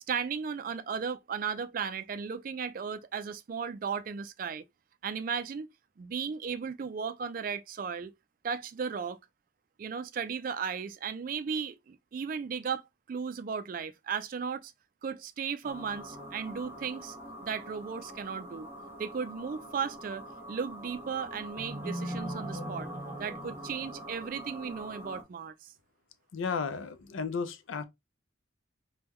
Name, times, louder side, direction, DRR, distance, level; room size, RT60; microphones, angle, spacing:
voice 1, 0.1-4.6 5.0-5.7 6.0-8.1 8.4-9.2 9.8-12.8 13.1-14.7 15.0-17.2 17.4-18.7 19.0-22.9 23.2-25.7, right 6 dB, 45° right, 0.3 m, -35 dB
sound 1, 15.6-25.2, right 1 dB, 10° right, 1.0 m, -42 dB
voice 2, 26.3-27.8, left 5 dB, 80° left, 0.5 m, -33 dB
3.5 x 2.2 x 3.0 m
head